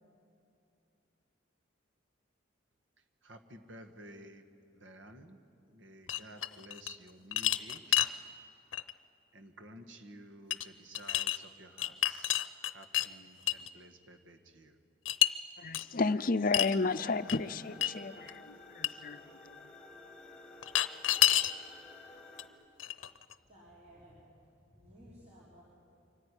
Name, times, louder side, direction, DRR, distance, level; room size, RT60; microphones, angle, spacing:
voice 1, 3.2-4.4 4.7-5.4 5.7-8.2 9.3-14.8, right 1 dB, 75° right, 8 dB, 1.6 m, -53 dB
sound 1, 6.1-7.0 7.3-8.1 8.7-8.9 10.5-10.7 10.9-11.4 11.8-13.1 13.5-13.7 15.1-15.3 15.7-15.8 16.5-16.8 17.3-17.4 17.8-17.9 18.3-18.4 18.8-18.9 20.6-21.5 22.4-22.5 22.8-23.3, left 12 dB, 85° left, 0.7 m, -29 dB
voice 2, 15.6-19.6, left 3 dB, 45° left, 13 dB, 0.6 m, -33 dB
sound 2, 16.7-22.5, left 2 dB, 5° left, 2.5 m, -53 dB
voice 3, 23.4-25.6, equal, 35° right, -7 dB, 3.9 m, -57 dB
24.5 x 15.0 x 9.8 m, 2.7 s
head